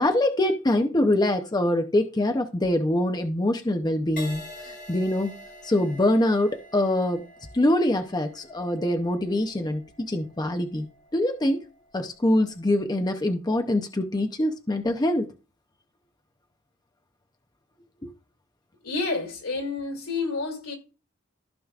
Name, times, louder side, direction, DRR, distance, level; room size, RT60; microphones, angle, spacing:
voice 1, 0.0-5.3 5.6-7.2 7.5-10.8 11.1-11.6 11.9-15.3, left 1 dB, 20° left, 0.6 m, -24 dB
Crash cymbal, 4.2-11.8 12.5-12.8, left 1 dB, 45° left, 2.9 m, -46 dB
voice 2, 18.8-20.7, left 3 dB, 90° left, 2.8 m, -29 dB
15.0 x 5.0 x 2.4 m
head